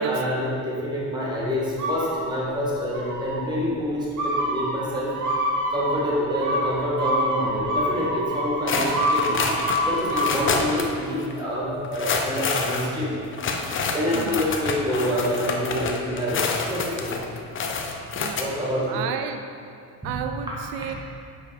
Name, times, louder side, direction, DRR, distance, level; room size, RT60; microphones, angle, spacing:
voice 1, 0.0-5.1 5.7-9.6 9.8-13.4 13.9-17.3 18.4-19.0 20.0-20.1 20.5-20.9, equal, 10° right, -6 dB, 1.9 m, -27 dB
sound 1, 1.8-2.5 2.9-3.5 4.2-10.5, equal, 45° right, 1.7 m, -26 dB
sound 2, 8.7-10.9 11.2-11.3 11.8-18.4, left 4 dB, 30° left, 0.7 m, -28 dB
voice 2, 18.9-19.5 20.0-20.9, right 9 dB, 90° right, 7 dB, 0.6 m, -32 dB
7.1 x 5.0 x 4.9 m, 2.3 s
cardioid pair, 120°, 41 cm